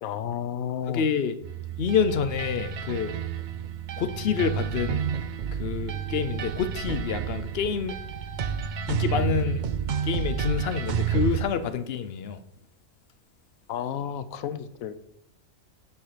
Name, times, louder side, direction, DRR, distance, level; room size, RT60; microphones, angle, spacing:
voice 1, 0.0-1.0 13.7-14.9, left 9 dB, 85° left, 1.1 m, -32 dB
voice 2, 0.9-1.3 1.8-3.2 4.0-5.1 5.5-8.0 8.9-9.7 10.0-12.4, left 6 dB, 55° left, 0.8 m, -27 dB
sound 1, 1.4-11.4, right 8 dB, 65° right, 0.4 m, -30 dB
7.4 x 7.0 x 5.0 m
omnidirectional pair, 1.4 m